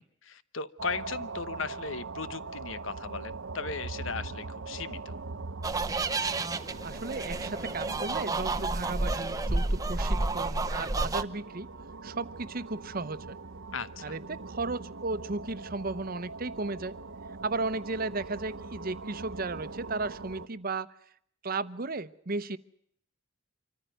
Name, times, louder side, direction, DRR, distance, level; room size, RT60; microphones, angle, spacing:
voice 1, 0.0-5.2 13.7-14.2, left 5 dB, 80° left, 15 dB, 1.0 m, -37 dB
sound 1, 0.8-20.5, right 3 dB, 75° right, 1.0 m, -42 dB
sound 2, 5.6-11.2, right 2 dB, 20° right, 0.8 m, -30 dB
voice 2, 6.8-11.7 12.0-13.4 14.0-17.0 17.4-20.9 21.4-22.6, right 3 dB, 45° right, 14 dB, 0.9 m, -35 dB
26.0 x 14.5 x 9.2 m, 0.68 s
head